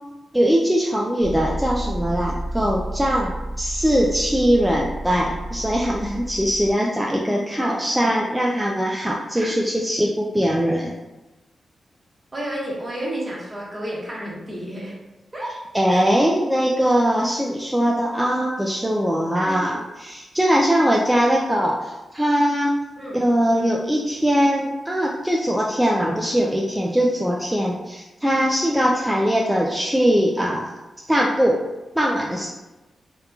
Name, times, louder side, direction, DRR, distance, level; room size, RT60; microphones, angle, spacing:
voice 1, 0.3-3.3 3.6-10.9 15.7-22.7 23.1-30.7 31.1-31.6 32.0-32.5, equal, 5° right, -2 dB, 0.4 m, -21 dB
sound 1, 1.2-6.7, right 1 dB, 70° left, 0.6 m, -31 dB
voice 2, 12.3-15.0 15.3-15.5 15.9-16.1 19.3-19.8 23.0-23.3, right 1 dB, 35° right, -4 dB, 1.0 m, -31 dB
2.8 x 2.3 x 2.3 m, 1.1 s
supercardioid pair, 45°, 0 cm